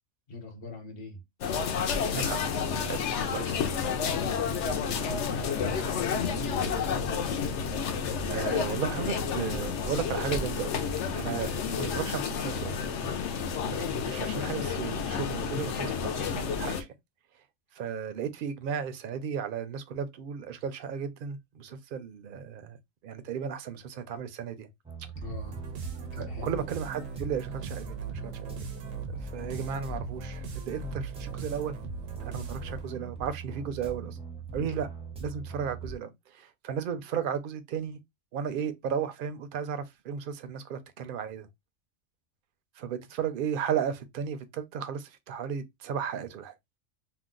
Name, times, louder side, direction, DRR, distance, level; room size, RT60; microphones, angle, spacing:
voice 1, 0.3-1.2 3.9-7.1 25.1-25.6 26.1-26.6 32.9-33.1 34.0-34.1 34.6-34.7, left 2 dB, 50° left, 1.1 m, -42 dB
sound 1, 1.4-16.8, left 6 dB, 70° left, 0.9 m, -30 dB
voice 2, 2.1-3.0 3.3-3.6 7.8-12.9 13.7-16.9 17.7-22.8 23.0-24.7 26.2-28.3 29.1-31.8 32.2-34.2 34.5-34.9 35.2-38.0 38.3-41.5 42.8-46.5, right 7 dB, 60° right, 0.6 m, -35 dB
sound 2, 24.8-36.0, right 4 dB, 5° right, 0.5 m, -42 dB
sound 3, 25.3-33.0, right 4 dB, 90° right, 1.1 m, -39 dB
2.7 x 2.1 x 3.7 m
omnidirectional pair, 1.3 m